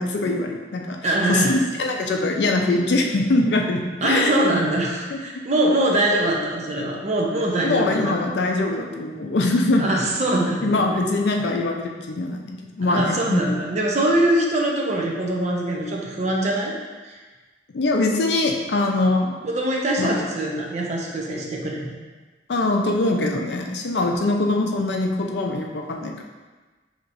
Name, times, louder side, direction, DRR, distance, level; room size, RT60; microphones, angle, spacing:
voice 1, 0.0-4.4 5.1-5.4 7.6-9.9 10.6-13.4 17.7-19.4 20.0-20.3 22.5-26.2, left 2 dB, 65° left, 2 dB, 0.5 m, -23 dB
voice 2, 1.0-1.5 4.0-8.1 9.8-10.8 12.9-16.7 17.1-17.2 19.4-21.9, right 1 dB, 40° right, -1 dB, 0.6 m, -23 dB
5.5 x 2.9 x 2.6 m, 1.3 s
head